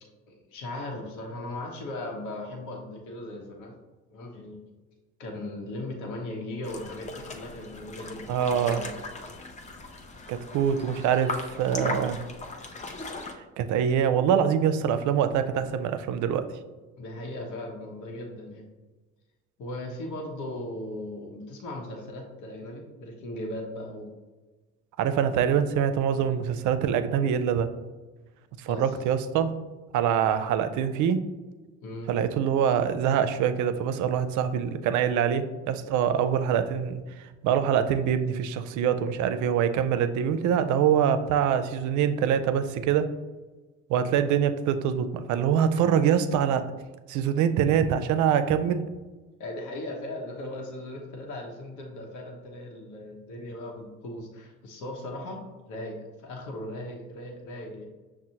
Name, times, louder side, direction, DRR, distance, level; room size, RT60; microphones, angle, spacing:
voice 1, 0.3-3.8 4.1-4.6 5.2-8.9 11.7-12.0 17.0-18.7 19.6-24.1 25.3-25.5 26.1-26.4 28.7-29.0 31.8-32.1 44.0-44.2 49.4-55.4 55.7-57.9, left 1 dB, 65° left, 1 dB, 0.9 m, -38 dB
sound 1, 6.6-13.3, left 2 dB, 20° left, 0.5 m, -38 dB
voice 2, 8.3-8.8 10.3-12.2 13.6-16.5 25.0-27.7 28.6-29.5 29.9-31.3 32.1-43.1 43.9-46.6 47.1-48.8, right 8 dB, 65° right, 10 dB, 0.5 m, -24 dB
6.0 x 2.1 x 2.8 m, 1.2 s
hypercardioid pair, 60°, 33 cm